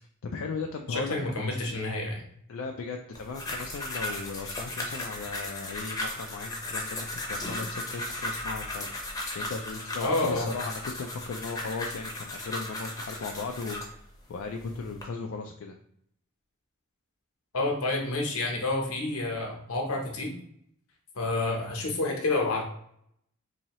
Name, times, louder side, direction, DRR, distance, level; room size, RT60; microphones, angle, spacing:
voice 1, 0.2-1.3 2.5-8.9 9.3-15.8, left 4 dB, 70° left, 2 dB, 0.4 m, -37 dB
voice 2, 0.9-2.2 10.0-10.5 17.5-20.3 21.1-22.6, left 2 dB, 90° left, 1 dB, 1.0 m, -29 dB
sound 1, 3.1-13.9 14.6-15.0, left 1 dB, 15° left, 0.7 m, -36 dB
4.0 x 2.7 x 3.0 m, 0.70 s
head